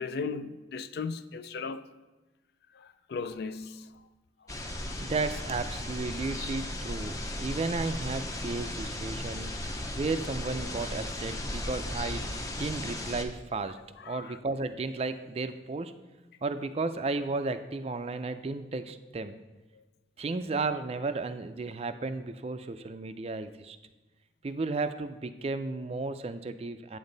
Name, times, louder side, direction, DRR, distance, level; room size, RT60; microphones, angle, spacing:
voice 1, 0.0-1.9 2.7-4.0 14.0-14.4, left 4 dB, 60° left, 0.4 m, -37 dB
sound 1, 4.5-13.3, left 1 dB, 20° left, 0.6 m, -36 dB
voice 2, 5.0-12.3 12.6-13.8 14.1-15.9 16.4-19.4 20.2-23.8 24.4-27.0, right 3 dB, 35° right, 0.4 m, -33 dB
8.7 x 7.2 x 3.9 m
head